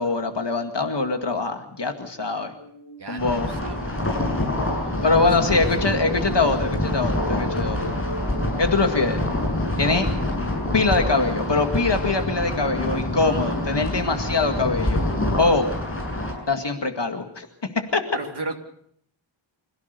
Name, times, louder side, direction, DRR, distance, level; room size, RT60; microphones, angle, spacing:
voice 1, 0.0-2.5 3.1-3.5 5.0-7.9 8.6-9.2 9.8-10.1 10.7-15.0 15.4-15.7 16.5-17.5 17.7-18.0, left 3 dB, 60° left, 5 dB, 2.2 m, -23 dB
sound 1, 2.6-8.7, equal, 75° left, 7.7 m, -38 dB
voice 2, 3.0-4.3 4.8-5.8 13.2-13.6 18.1-18.5, right 3 dB, 55° right, 3 dB, 3.0 m, -37 dB
sound 2, 3.2-16.3, left 1 dB, 25° left, 7.9 m, -26 dB
26.5 x 17.0 x 6.8 m, 0.67 s
wide cardioid pair, 60°, 48 cm